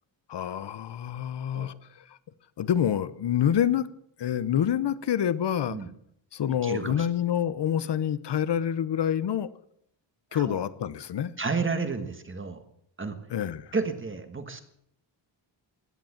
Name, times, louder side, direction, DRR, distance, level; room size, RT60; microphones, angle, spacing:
voice 1, 0.3-2.2 2.6-3.9 4.2-5.8 6.3-9.5 10.3-11.3 13.3-13.7, left 9 dB, 60° left, 16 dB, 0.9 m, -27 dB
voice 2, 6.6-7.1 10.3-10.6 11.4-12.6 13.0-13.2 13.7-14.6, right 4 dB, 25° right, 8 dB, 1.5 m, -31 dB
16.5 x 10.5 x 7.2 m, 0.71 s
wide cardioid pair, 170°, 48 cm